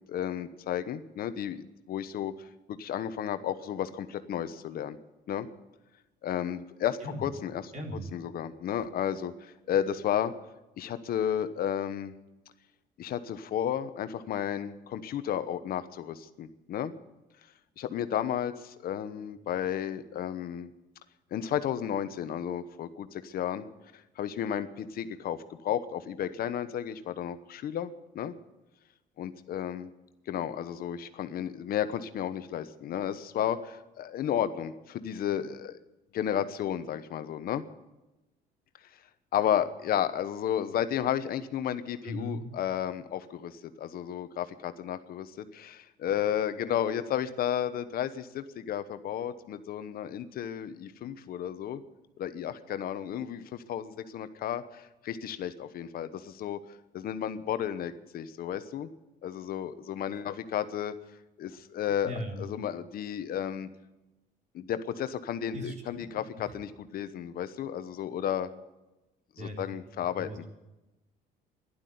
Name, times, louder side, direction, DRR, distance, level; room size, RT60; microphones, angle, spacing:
voice 1, 0.1-2.3 2.8-5.0 5.3-5.5 6.2-7.6 8.1-10.3 10.8-12.1 13.0-16.9 17.8-20.7 21.3-23.6 23.9-28.3 29.2-29.9 30.3-35.8 36.1-37.6 39.3-51.8 52.2-58.9 59.2-60.9 61.4-62.1 62.4-63.7 64.5-68.5 69.4-70.3, left 10 dB, 60° left, 11 dB, 1.0 m, -33 dB
voice 2, 7.7-8.0 42.0-42.5 62.0-62.4 65.5-66.1 66.4-66.5 69.4-69.8 70.2-70.5, equal, 45° right, 2 dB, 4.0 m, -38 dB
12.0 x 11.5 x 9.3 m, 1.0 s
cardioid pair, 110°, 17 cm